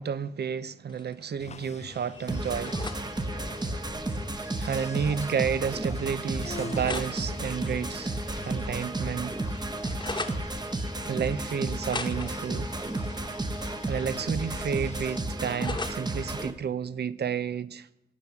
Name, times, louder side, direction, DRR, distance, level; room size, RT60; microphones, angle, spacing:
voice 1, 0.0-2.8 4.6-8.1 8.4-9.4 11.1-12.7 13.6-17.9, right 7 dB, 80° right, 0.6 m, -31 dB
sound 1, 0.9-1.6 1.8-3.0 3.3-3.8 4.9-5.0 5.3-5.4 6.4-8.7 8.9-10.4 11.5-14.3 14.5-16.0, left 3 dB, 25° left, 1.0 m, -41 dB
sound 2, 1.4-15.2, left 5 dB, 40° left, 0.5 m, -46 dB
sound 3, 2.3-16.5, right 2 dB, 25° right, 0.9 m, -33 dB
17.5 x 6.5 x 7.2 m
wide cardioid pair, 150°, 17 cm